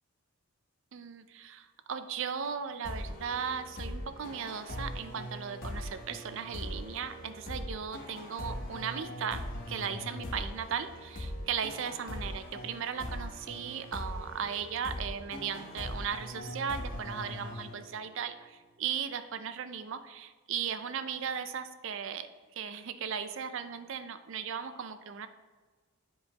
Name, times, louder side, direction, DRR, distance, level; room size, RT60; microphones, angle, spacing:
voice 1, 0.9-9.4 9.7-25.3, right 7 dB, 55° right, 10 dB, 0.4 m, -37 dB
sound 1, 2.8-18.3, left 1 dB, 40° left, 1.0 m, -41 dB
7.8 x 5.3 x 2.9 m, 1.4 s
head